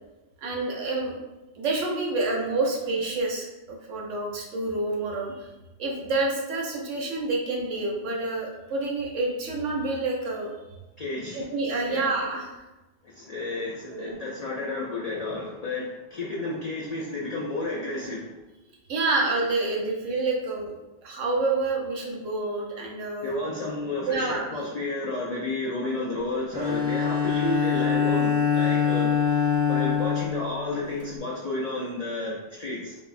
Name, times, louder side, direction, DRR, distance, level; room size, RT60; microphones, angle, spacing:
voice 1, 0.4-1.2 1.6-5.5 5.8-10.5 11.3-12.5 13.9-14.2 18.9-20.7 21.0-23.3 24.1-24.5, right 3 dB, 90° right, -1 dB, 1.0 m, -28 dB
voice 2, 11.0-11.4 11.9-12.1 13.0-18.3 23.2-29.1 29.7-33.0, left 2 dB, 90° left, -4 dB, 0.3 m, -31 dB
Bowed string instrument, 26.5-31.1, left 7 dB, 60° right, 0.3 m, -24 dB
3.9 x 2.0 x 2.4 m, 1.1 s
omnidirectional pair, 1.2 m